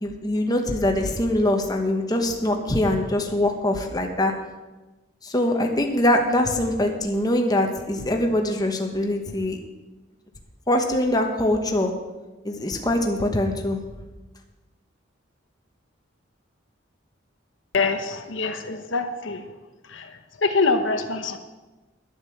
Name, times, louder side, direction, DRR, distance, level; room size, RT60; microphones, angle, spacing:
voice 1, 0.0-4.3 5.2-9.6 10.7-11.9 12.4-13.8, left 1 dB, 20° left, 3 dB, 1.2 m, -23 dB
voice 2, 17.7-19.4 19.9-21.4, left 4 dB, 75° left, 6 dB, 1.0 m, -25 dB
11.5 x 8.1 x 7.2 m, 1.2 s
head